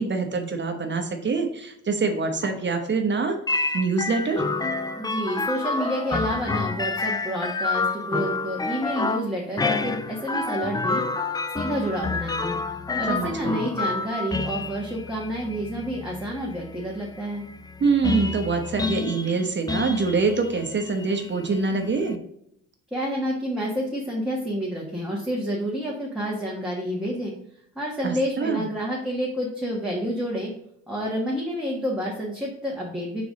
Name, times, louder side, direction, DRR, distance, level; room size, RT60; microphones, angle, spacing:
voice 1, 0.0-3.4 3.7-4.4 13.1-13.6 17.8-22.2 28.0-28.6, right 4 dB, 40° right, 4 dB, 0.9 m, -25 dB
sound 1, 3.5-22.2, left 3 dB, 15° left, 0.4 m, -29 dB
voice 2, 5.0-11.0 11.5-12.6 12.9-17.4 22.9-27.3 27.7-30.5 30.9-33.2, equal, 5° right, -4 dB, 1.4 m, -29 dB
4.7 x 4.0 x 4.9 m, 0.74 s
cardioid pair, 90°, 30 cm